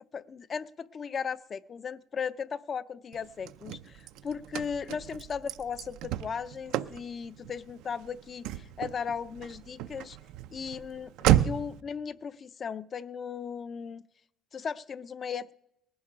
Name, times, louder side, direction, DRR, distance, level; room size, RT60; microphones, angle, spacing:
voice 1, 0.1-10.2 10.5-14.0 14.5-15.5, left 6 dB, 35° left, 15 dB, 0.4 m, -37 dB
Car / Slam, 3.1-11.8, right 13 dB, 80° right, 0.4 m, -33 dB
19.0 x 11.0 x 4.9 m, 0.81 s
cardioid pair, 125°, 0 cm